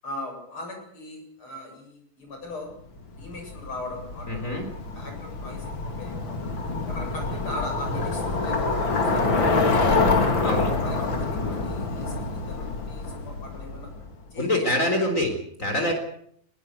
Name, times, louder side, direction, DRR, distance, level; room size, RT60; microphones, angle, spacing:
voice 1, 0.0-2.7 3.1-4.6 4.9-6.4 6.9-10.4 10.8-13.9 14.3-15.0, left 2 dB, 90° left, 3 dB, 8.8 m, -39 dB
Bicycle, 3.2-14.1, left 3 dB, 65° left, 3.7 m, -26 dB
voice 2, 4.3-4.7 10.4-10.7 14.4-15.3 15.6-16.0, left 1 dB, 35° left, 4 dB, 4.3 m, -25 dB
21.5 x 19.5 x 8.2 m, 0.68 s
omnidirectional pair, 2.3 m